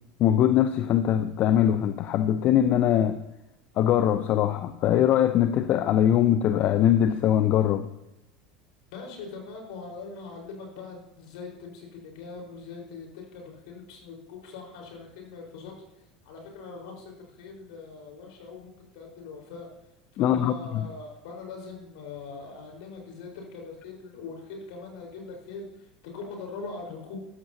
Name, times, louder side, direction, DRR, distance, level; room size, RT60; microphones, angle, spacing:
voice 1, 0.2-3.2 3.8-7.9 20.2-20.9, left 10 dB, 50° left, 11 dB, 0.7 m, -22 dB
voice 2, 8.9-15.7 16.2-19.7 20.1-27.2, left 4 dB, 65° left, 0 dB, 4.6 m, -42 dB
16.0 x 13.5 x 2.8 m, 0.90 s
hypercardioid pair, 80°, 4 cm